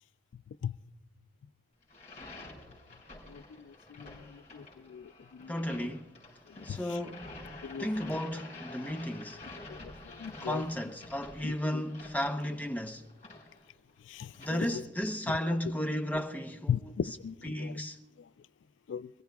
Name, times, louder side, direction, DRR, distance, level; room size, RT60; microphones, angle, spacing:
sound 1, 1.8-14.5, left 2 dB, 40° left, 6.2 m, -49 dB
voice 1, 3.3-5.1 5.4-5.5 6.7-6.8 7.6-7.9 10.2-10.6 11.4-11.5 14.1-14.3 14.6-14.8 16.7-17.7 18.9-19.1, left 8 dB, 85° left, 0.3 m, -37 dB
voice 2, 5.5-6.1 6.6-7.4 7.8-9.4 10.4-13.1 14.4-17.2 17.4-18.0, equal, 10° left, 0.7 m, -34 dB
27.0 x 15.5 x 2.3 m
head